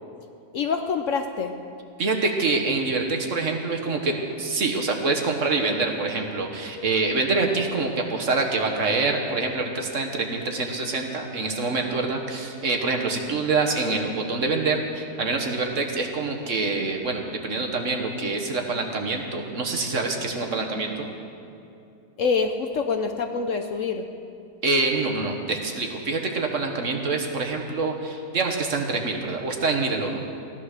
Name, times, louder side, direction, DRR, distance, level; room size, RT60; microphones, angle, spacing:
voice 1, 0.5-1.6 22.2-24.1, left 5 dB, 60° left, 6 dB, 0.9 m, -26 dB
voice 2, 2.0-21.1 24.6-30.2, right 3 dB, 50° right, 2 dB, 1.5 m, -26 dB
16.0 x 11.0 x 6.6 m, 2.7 s
omnidirectional pair, 1.8 m